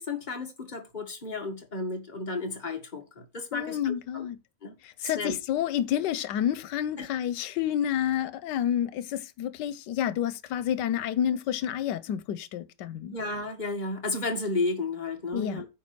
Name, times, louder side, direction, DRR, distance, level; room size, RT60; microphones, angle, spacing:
voice 1, 0.1-4.3 4.6-4.7 5.0-5.4 7.0-7.1 13.1-15.7, left 3 dB, 25° left, 1.9 m, -33 dB
voice 2, 3.5-4.4 4.8-13.1 15.3-15.6, left 10 dB, 90° left, 1.3 m, -29 dB
9.7 x 4.6 x 6.0 m
omnidirectional pair, 1.8 m